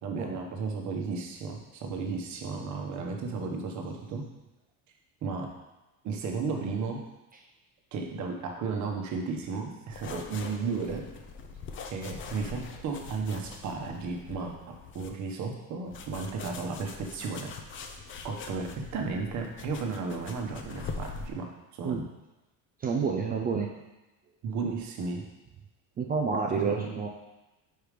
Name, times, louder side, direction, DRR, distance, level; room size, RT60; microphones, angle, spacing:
voice 1, 0.0-4.3 5.2-5.5 6.0-7.0 7.9-11.1 11.9-17.5 18.2-22.0 24.4-25.3 26.5-26.9, right 4 dB, 45° right, 1 dB, 1.0 m, -34 dB
sound 1, 9.9-15.1 15.9-21.3, left 4 dB, 30° left, 0.5 m, -43 dB
voice 2, 22.8-23.7 26.0-27.1, right 5 dB, 25° right, 2 dB, 0.3 m, -29 dB
4.9 x 4.6 x 5.1 m, 1.0 s
cardioid pair, 150°, 41 cm